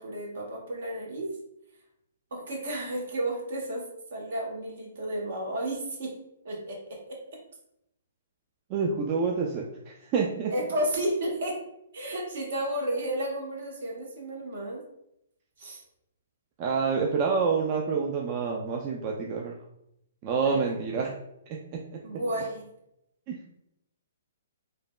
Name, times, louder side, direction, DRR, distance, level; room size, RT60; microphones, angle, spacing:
voice 1, 0.0-1.3 2.3-3.8 4.1-6.1 6.4-7.4 10.5-11.6 11.9-14.8 15.6-15.8 20.4-20.6 20.9-21.1 22.0-22.6, right 1 dB, 65° right, -1 dB, 0.9 m, -32 dB
voice 2, 8.7-10.5 16.6-19.5 20.2-21.1 21.7-22.0 23.3-23.4, right 5 dB, 35° right, -1 dB, 0.3 m, -28 dB
3.2 x 2.1 x 2.3 m, 0.79 s
hypercardioid pair, 130°, 0 cm